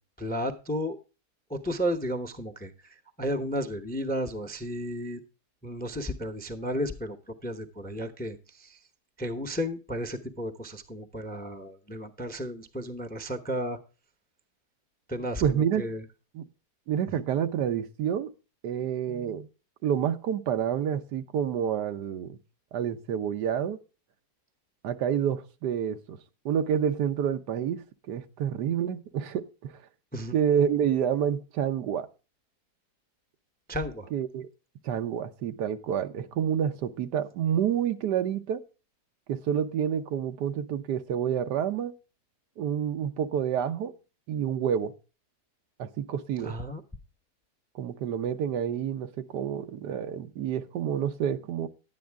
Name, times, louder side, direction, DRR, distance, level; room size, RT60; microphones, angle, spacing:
voice 1, 0.2-1.0 1.5-5.2 5.6-8.8 9.2-13.8 15.1-16.0 17.2-17.3 30.1-30.3 33.7-34.1 46.4-46.8, equal, 10° left, 0.5 m, -33 dB
voice 2, 15.4-15.8 16.3-16.5 16.9-18.3 18.6-19.5 19.8-22.4 22.7-23.8 24.8-26.2 26.4-29.8 30.3-32.1 34.1-34.5 34.8-38.6 39.3-41.9 42.6-43.9 44.3-44.9 45.8-46.5 47.7-51.7, right 8 dB, 85° right, 1.4 m, -28 dB
10.5 x 9.1 x 3.4 m
omnidirectional pair, 1.7 m